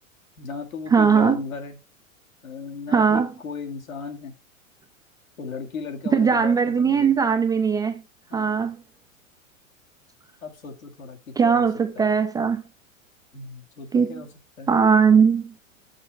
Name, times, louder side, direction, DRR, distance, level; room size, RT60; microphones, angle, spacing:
voice 1, 0.4-1.8 2.4-4.4 5.4-7.1 8.3-8.7 10.4-11.7 12.0-12.1 13.3-14.3 14.6-14.7, left 5 dB, 80° left, 2.1 m, -36 dB
voice 2, 0.9-1.4 2.9-3.3 6.1-8.0 8.3-8.8 11.4-12.6 13.9-14.2 14.7-15.5, right 6 dB, 10° right, 0.4 m, -19 dB
7.5 x 6.5 x 3.3 m
figure-of-eight pair, 95°, 40 cm